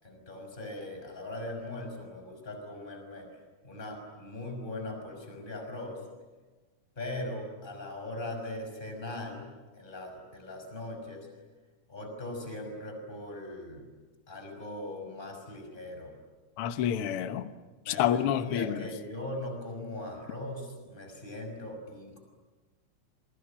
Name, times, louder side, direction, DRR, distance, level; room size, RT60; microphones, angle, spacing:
voice 1, 0.0-3.3 3.6-6.0 7.0-11.3 11.9-13.9 14.3-16.1 17.9-22.2, left 1 dB, 15° left, 5.9 m, -40 dB
voice 2, 16.6-17.5 17.9-18.8, left 10 dB, 60° left, 1.7 m, -28 dB
28.5 x 24.0 x 8.7 m
omnidirectional pair, 3.6 m